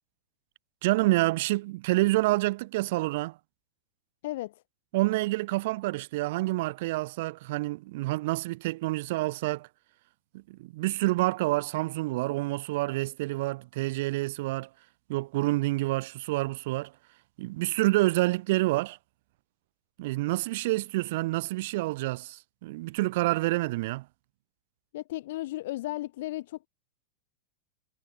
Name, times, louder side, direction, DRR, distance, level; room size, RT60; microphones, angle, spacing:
voice 1, 0.8-3.4 4.9-9.7 10.3-14.7 15.1-16.9 17.4-19.0 20.0-24.0, right 20 dB, 50° right, 0.7 m, -28 dB
voice 2, 4.2-4.6 24.9-26.7, left 16 dB, 55° left, 2.8 m, -35 dB
figure-of-eight pair, 90°, 0 cm